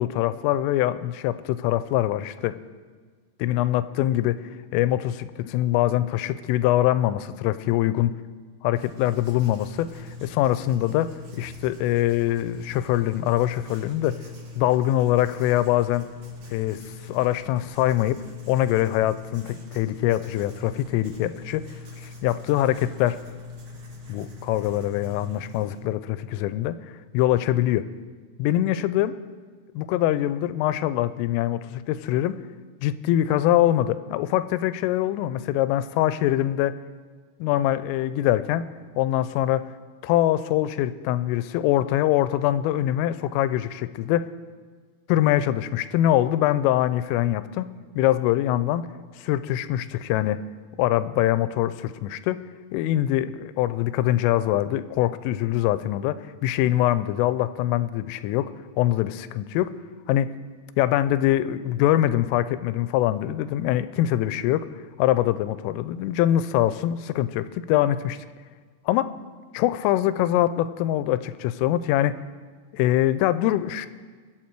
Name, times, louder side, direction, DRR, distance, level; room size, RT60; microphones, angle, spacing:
voice 1, 0.0-2.6 3.4-4.4 4.7-8.2 8.6-14.2 14.6-16.1 16.5-16.8 17.1-18.2 18.5-21.6 22.0-23.2 24.1-26.8 27.1-27.9 28.4-29.2 29.7-32.4 32.8-36.8 37.4-38.6 39.0-39.6 40.0-44.3 45.1-47.7 48.0-48.8 49.2-50.4 50.8-52.4 52.7-58.5 58.8-59.7 60.1-60.3 60.8-64.7 65.0-68.2 68.9-69.1 69.5-72.2 72.7-73.9, left 13 dB, 90° left, 14 dB, 3.2 m, -23 dB
Writing, 8.7-25.8, left 3 dB, 70° right, 1.2 m, -42 dB
22.0 x 8.4 x 4.6 m, 1.5 s
omnidirectional pair, 5.7 m